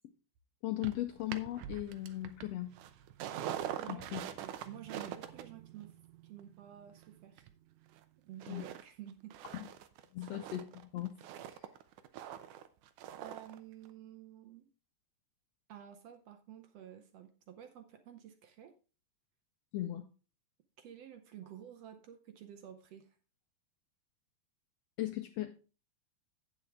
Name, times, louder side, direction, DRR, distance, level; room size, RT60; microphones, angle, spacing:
voice 1, 0.6-2.7 3.9-4.3 8.5-8.6 9.5-9.6 10.1-11.1 19.7-20.0 25.0-25.5, left 15 dB, 85° left, 1.4 m, -37 dB
sound 1, 0.8-8.0 8.4-8.8 9.1-13.6 13.9-14.0, right 10 dB, 85° right, 2.3 m, -44 dB
voice 2, 3.8-6.0 6.2-7.5 8.3-9.4 10.2-10.4 13.2-14.7 15.7-18.7 20.8-23.2, right 10 dB, 65° right, 1.8 m, -51 dB
9.1 x 8.2 x 3.5 m
omnidirectional pair, 3.5 m